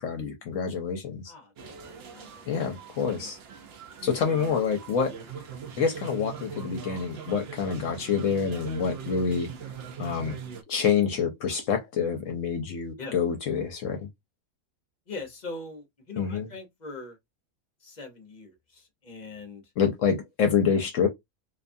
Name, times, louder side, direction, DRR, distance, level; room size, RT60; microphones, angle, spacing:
voice 1, 0.0-1.3 2.5-3.4 4.0-5.1 5.8-9.5 10.0-10.4 10.7-14.1 16.2-16.5 19.8-21.1, left 6 dB, 70° left, 0.9 m, -27 dB
voice 2, 1.3-2.7 3.1-3.3 4.2-4.5 13.0-13.2 15.1-17.2 17.8-19.6, left 3 dB, 40° left, 0.7 m, -42 dB
sound 1, 1.6-10.6, right 7 dB, 60° right, 0.7 m, -41 dB
2.7 x 2.2 x 2.5 m
omnidirectional pair, 1.5 m